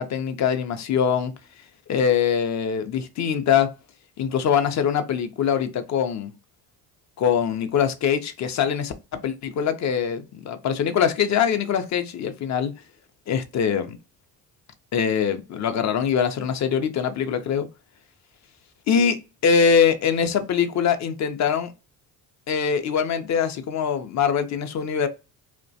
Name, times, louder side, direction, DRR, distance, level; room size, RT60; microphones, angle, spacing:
voice 1, 0.0-1.3 1.9-3.7 4.2-6.3 7.2-8.9 9.2-12.7 13.3-14.0 14.9-17.7 18.9-19.2 19.4-21.7 22.5-25.1, left 7 dB, 40° left, 0.5 m, -23 dB
2.3 x 2.1 x 2.6 m
hypercardioid pair, 60°, 45 cm